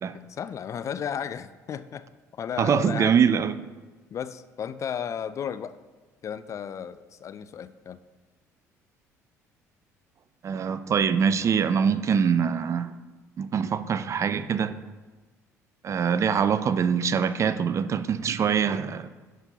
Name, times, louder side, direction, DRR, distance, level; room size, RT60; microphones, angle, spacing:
voice 1, 0.3-2.0 2.3-3.2 4.1-5.8 6.2-8.0, left 8 dB, 35° left, 13 dB, 0.4 m, -34 dB
voice 2, 2.6-3.5 10.4-12.9 13.4-14.8 15.8-19.1, right 7 dB, 35° right, 12 dB, 0.5 m, -24 dB
11.0 x 4.4 x 4.0 m, 1.3 s
figure-of-eight pair, 55°, 9 cm